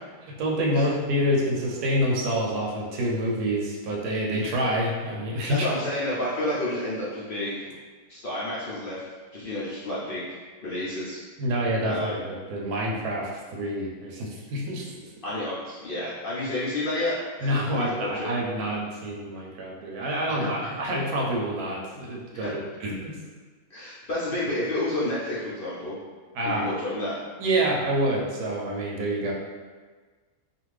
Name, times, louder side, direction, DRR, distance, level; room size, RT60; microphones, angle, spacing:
voice 1, 0.3-5.7 11.4-15.0 17.4-23.2 26.3-26.7 27.4-29.3, equal, 90° right, -2 dB, 1.1 m, -27 dB
voice 2, 5.5-7.7 8.1-9.0 9.3-10.2 10.6-11.2 11.8-12.2 15.2-18.3 20.3-20.5 22.3-22.5 23.7-26.0 26.4-27.1, left 1 dB, 65° left, -8 dB, 0.5 m, -30 dB
2.6 x 2.5 x 3.1 m, 1.4 s
omnidirectional pair, 1.6 m